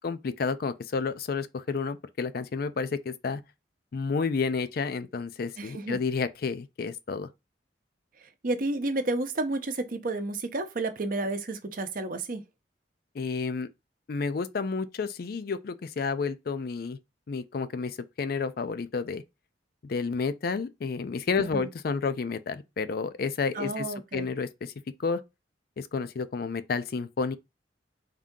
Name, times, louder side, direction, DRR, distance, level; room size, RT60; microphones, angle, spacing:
voice 1, 0.0-3.4 3.9-7.3 13.1-13.7 14.1-17.0 17.3-19.2 19.8-24.7 25.0-25.2 25.8-27.4, left 4 dB, 55° left, 0.4 m, -30 dB
voice 2, 5.6-6.0 8.2-12.4 21.5-21.7 23.5-24.3, right 2 dB, 50° right, 0.7 m, -31 dB
3.6 x 2.7 x 3.6 m
head